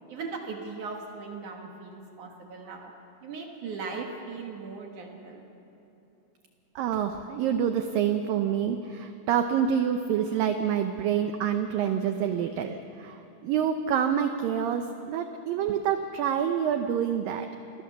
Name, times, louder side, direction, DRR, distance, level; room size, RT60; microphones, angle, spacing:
voice 1, 0.1-2.9 3.2-5.4, right 4 dB, 60° right, 1 dB, 2.4 m, -38 dB
voice 2, 6.8-17.5, right 8 dB, 90° right, 7 dB, 2.0 m, -27 dB
26.5 x 16.0 x 7.1 m, 2.9 s
omnidirectional pair, 5.1 m